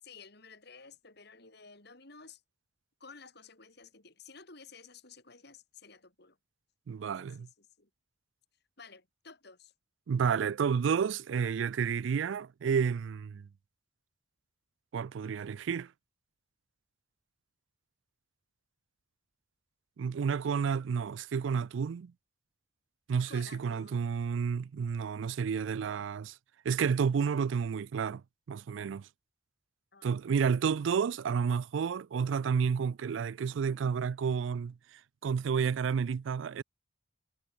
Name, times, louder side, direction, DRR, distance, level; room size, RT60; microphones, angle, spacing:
voice 1, 0.0-2.4 3.0-6.4 7.2-7.9 8.8-9.7 23.3-24.1 29.9-30.2, left 4 dB, 55° left, 5.2 m, -53 dB
voice 2, 6.9-7.5 10.1-13.5 14.9-15.9 20.0-22.1 23.1-26.4 26.6-28.2 28.5-29.1 30.0-36.6, right 6 dB, 75° right, 0.4 m, -31 dB
head